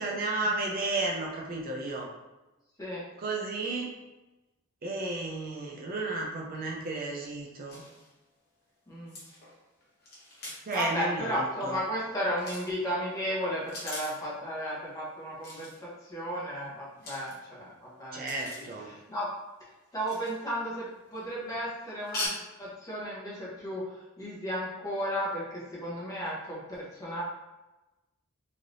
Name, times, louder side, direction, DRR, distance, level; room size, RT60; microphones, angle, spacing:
voice 1, 0.0-2.1 3.2-4.0 4.8-7.8 10.7-11.8 17.0-17.1 18.1-18.9, right 2 dB, 45° right, -2 dB, 0.5 m, -33 dB
sound 1, 6.6-6.7 6.8-6.9 7.4-7.5 7.7-8.2 9.1-11.0 12.3-12.8 13.5-14.3 15.4-15.9 16.9-17.7 18.3-18.8 20.0-20.6 20.9-21.3 22.0-22.3, left 2 dB, 45° left, 1.1 m, -42 dB
voice 2, 10.7-18.3 18.9-19.3 19.9-27.2, equal, 15° left, -7 dB, 0.9 m, -34 dB
3.2 x 2.7 x 2.6 m, 1.1 s
head